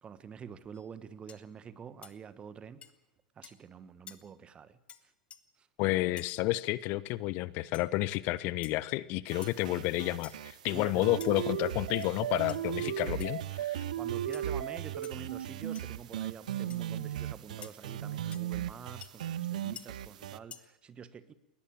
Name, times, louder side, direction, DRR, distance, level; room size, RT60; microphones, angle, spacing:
voice 1, 0.0-2.8 3.3-5.1 5.6-6.2 10.7-11.1 12.8-13.2 14.0-21.3, right 7 dB, 25° right, 15 dB, 1.5 m, -47 dB
sound 1, 0.7-0.9 1.3-1.5 2.0-2.2 2.8-2.9 3.4-3.6 4.1-4.2 4.9-5.0 5.3-5.4 6.2-6.3 7.7-7.9 8.6-8.8 9.4-9.6 10.2-10.5 11.2-11.3 11.9-12.1 12.5-12.6 13.2-13.3 14.3-14.5 15.0-15.1 15.7-15.9 16.7-16.8 17.6-17.7 18.3-18.4 19.0-19.1 19.8-19.9 20.5-20.6, left 8 dB, 25° left, 1.6 m, -49 dB
voice 2, 5.8-13.8, left 18 dB, 45° left, 20 dB, 0.8 m, -31 dB
sound 2, 9.3-20.4, right 11 dB, 65° right, 0.8 m, -37 dB
21.0 x 18.0 x 8.8 m, 1.0 s
figure-of-eight pair, 90°, 4 cm